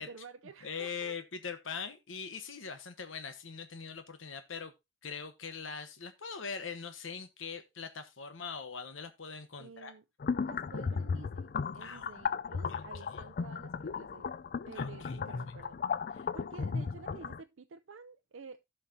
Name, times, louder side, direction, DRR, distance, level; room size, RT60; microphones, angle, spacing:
voice 1, 0.0-1.2 9.6-10.0 10.4-14.4 14.6-15.8 16.3-18.6, right 4 dB, 85° right, 0.5 m, -51 dB
voice 2, 0.6-4.7 5.0-9.9 11.8-12.1 12.7-12.8 13.1-13.2 14.7-15.2, left 5 dB, 85° left, 1.1 m, -42 dB
sound 1, 10.2-17.4, left 5 dB, 50° left, 0.4 m, -35 dB
15.5 x 5.7 x 2.7 m
head